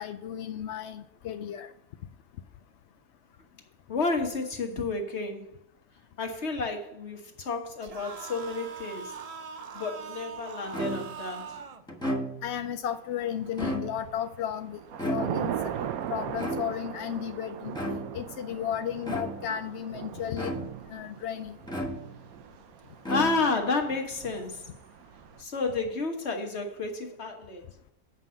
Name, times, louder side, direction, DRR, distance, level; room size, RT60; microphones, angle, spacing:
voice 1, 0.0-1.7 12.4-15.7 16.1-21.6 24.7-24.8, left 9 dB, 65° left, 8 dB, 0.7 m, -34 dB
voice 2, 3.9-5.5 6.2-9.2 9.7-11.5 23.1-24.7 25.4-27.6, left 3 dB, 50° left, 3 dB, 1.6 m, -31 dB
sound 1, 7.8-11.8, right 6 dB, 60° right, 0.3 m, -41 dB
sound 2, 10.7-11.3 11.9-12.6 13.4-14.2 15.0-15.7 16.4-17.0 17.7-18.3 19.0-19.6 20.4-21.0 21.7-22.4 23.0-23.7, equal, 5° left, 1.1 m, -34 dB
Thunder / Rain, 13.3-13.9 14.3-25.4, right 10 dB, 80° right, 1.1 m, -39 dB
8.2 x 5.5 x 7.5 m, 0.76 s
omnidirectional pair, 1.5 m